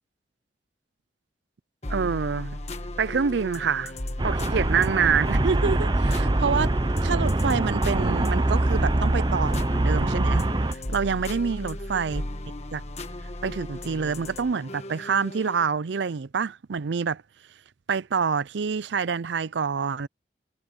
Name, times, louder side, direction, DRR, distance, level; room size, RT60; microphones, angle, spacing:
sound 1, 1.8-15.7, left 1 dB, 35° left, 1.4 m, -36 dB
voice 1, 1.9-2.6 3.0-3.9 4.2-12.2 12.7-12.8 13.4-17.2 17.9-20.1, right 6 dB, 75° right, 0.5 m, -27 dB
Traffic noise roadway noise, 4.2-10.7, right 2 dB, 25° right, 0.6 m, -24 dB
head